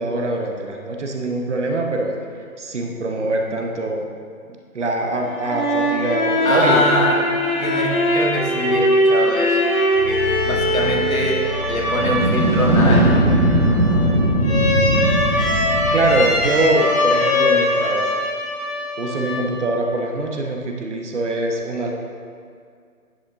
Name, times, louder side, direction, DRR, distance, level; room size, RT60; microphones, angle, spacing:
voice 1, 0.0-2.1 2.6-4.1 4.7-6.8 15.9-18.1 19.0-21.9, right 2 dB, 55° right, 2 dB, 0.9 m, -23 dB
sound 1, 5.2-19.8, left 1 dB, 25° left, 1.2 m, -21 dB
voice 2, 6.4-7.2 7.4-9.6 10.0-10.2 10.4-11.4 11.7-13.3, left 1 dB, 70° left, -2 dB, 1.7 m, -23 dB
sound 2, 9.9-15.2, left 1 dB, 85° right, 1.8 m, -30 dB
sound 3, 11.8-16.7, right 1 dB, 30° right, 1.2 m, -19 dB
10.0 x 5.1 x 3.6 m, 2.2 s
figure-of-eight pair, 150°, 44 cm